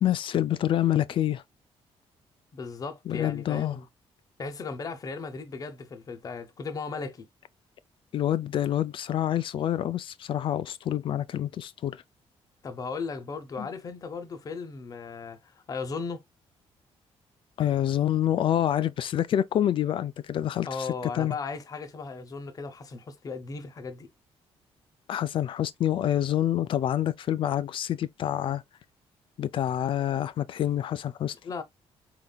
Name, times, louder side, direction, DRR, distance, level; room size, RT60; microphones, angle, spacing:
voice 1, 0.0-1.4 3.1-3.8 8.1-12.0 13.6-13.7 17.6-20.9 21.1-21.3 25.1-28.6 29.4-31.3, left 11 dB, 55° left, 0.4 m, -27 dB
voice 2, 2.5-3.8 4.4-7.3 12.6-16.2 20.6-24.1 31.4-31.6, left 4 dB, 35° left, 0.8 m, -36 dB
4.5 x 4.0 x 2.3 m
cardioid pair, 140°, 11 cm